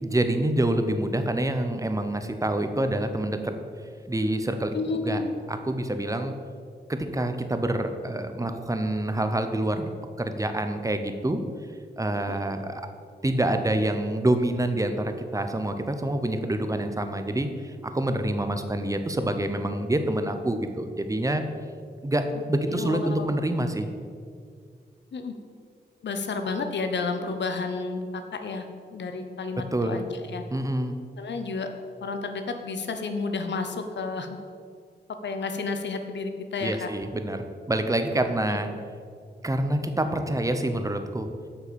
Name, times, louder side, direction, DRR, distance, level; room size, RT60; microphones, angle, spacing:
voice 1, 0.0-3.6 4.1-5.2 5.5-6.3 6.9-9.9 10.2-11.4 12.0-12.8 13.2-21.4 22.0-23.9 29.6-30.0 30.5-31.0 36.6-38.7 39.4-41.3, right 1 dB, 20° right, 7 dB, 0.9 m, -27 dB
voice 2, 4.7-5.3 12.3-12.4 22.7-23.3 25.1-25.3 26.0-28.0 28.3-28.7 28.9-30.4 31.2-31.7 32.0-34.3 35.2-36.9 38.5-38.6, left 4 dB, 80° left, 6 dB, 0.8 m, -31 dB
8.0 x 5.8 x 6.9 m, 2.1 s
cardioid pair, 70°, 18 cm